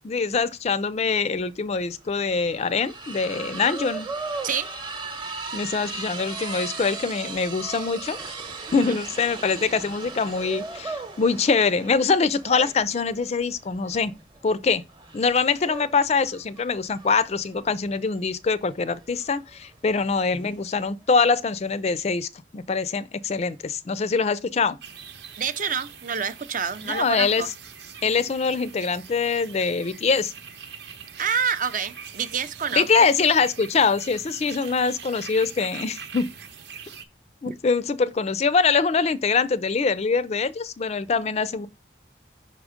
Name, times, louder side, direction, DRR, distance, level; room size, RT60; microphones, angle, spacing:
voice 1, 0.0-4.1 5.5-8.2 8.7-14.1 14.4-14.8 15.1-24.8 26.8-27.4 28.0-30.3 32.7-36.3 37.4-41.7, left 5 dB, 35° left, 0.4 m, -24 dB
sound 1, 1.4-1.5 1.8-20.6, right 3 dB, 25° right, 0.9 m, -37 dB
sound 2, 24.8-37.0, right 6 dB, 70° right, 0.9 m, -43 dB
voice 2, 25.4-27.5 31.2-33.1 37.5-37.6, right 6 dB, 45° right, 0.5 m, -28 dB
5.6 x 3.7 x 4.9 m
head